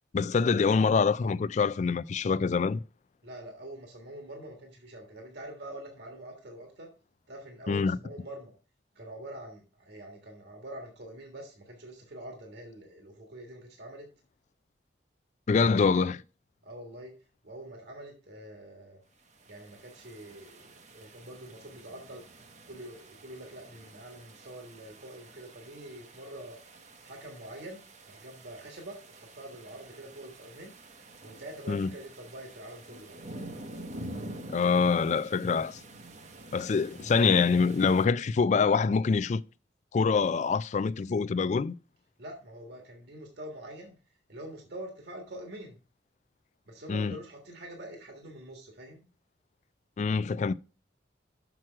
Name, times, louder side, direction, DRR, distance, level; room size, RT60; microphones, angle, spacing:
voice 1, 0.1-2.8 7.7-8.0 15.5-16.2 31.7-31.9 34.5-35.8 36.5-39.4 39.9-41.7 46.9-47.2 50.0-50.5, left 5 dB, 40° left, 0.3 m, -25 dB
voice 2, 3.2-6.9 7.3-8.5 8.9-14.1 16.6-17.1 17.4-19.0 19.4-22.2 22.6-26.6 27.0-27.8 28.1-30.7 31.2-33.2 42.2-45.8 46.7-49.0, right 1 dB, 60° right, 1.5 m, -45 dB
sound 1, 19.2-38.1, right 1 dB, 40° right, 0.9 m, -47 dB
6.2 x 6.1 x 4.5 m
head